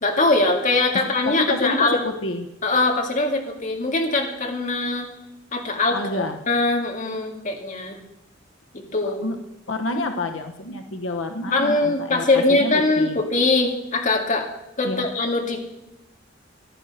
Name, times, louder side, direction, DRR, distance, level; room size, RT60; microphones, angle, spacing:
voice 1, 0.0-2.0 2.6-5.1 5.5-8.0 8.7-9.2 11.5-14.5 14.8-15.6, left 2 dB, 40° left, 2 dB, 2.2 m, -22 dB
voice 2, 1.2-2.5 5.9-6.4 9.2-9.4 9.7-13.2 14.8-15.1, left 2 dB, 85° left, 5 dB, 1.1 m, -28 dB
14.5 x 10.5 x 6.6 m, 0.91 s
head